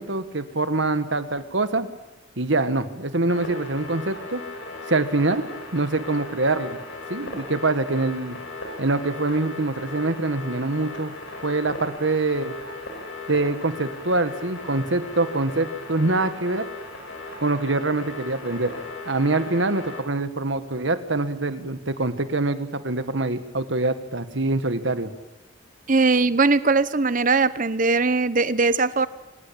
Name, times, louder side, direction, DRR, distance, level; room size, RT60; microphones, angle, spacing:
voice 1, 0.0-1.9 2.4-4.4 4.9-5.4 5.7-6.8 7.1-8.4 8.8-11.1 11.4-12.5 13.3-16.7 17.4-18.7 19.1-25.1, right 2 dB, 65° right, 10 dB, 1.8 m, -24 dB
sound 1, 3.3-20.0, left 2 dB, 90° left, 5.8 m, -37 dB
voice 2, 25.9-29.1, right 3 dB, 40° right, 15 dB, 0.9 m, -20 dB
24.0 x 19.0 x 8.8 m, 1.0 s
head